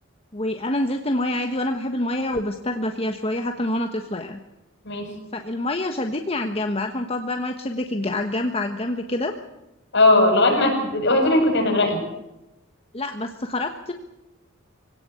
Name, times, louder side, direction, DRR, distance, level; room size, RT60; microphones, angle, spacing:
voice 1, 0.3-4.4 5.3-9.3 12.9-13.9, left 1 dB, 30° left, 5 dB, 1.3 m, -26 dB
voice 2, 9.9-12.0, left 2 dB, 60° left, 1 dB, 7.9 m, -18 dB
24.5 x 17.5 x 8.4 m, 0.95 s
head